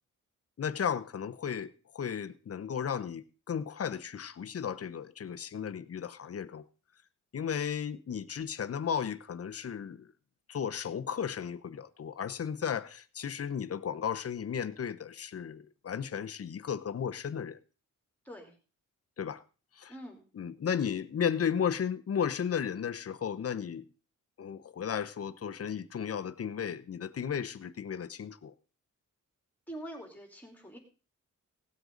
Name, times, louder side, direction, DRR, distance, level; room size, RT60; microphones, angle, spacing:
voice 1, 0.6-6.7 7.3-10.1 10.5-17.6 19.2-19.4 19.8-19.9 20.4-23.8 24.4-28.5, left 7 dB, 45° left, 12 dB, 0.8 m, -34 dB
voice 2, 19.9-20.2 29.7-30.8, right 1 dB, 5° left, 1 dB, 3.5 m, -44 dB
17.5 x 8.0 x 3.9 m, 0.36 s
cardioid pair, 105°, 32 cm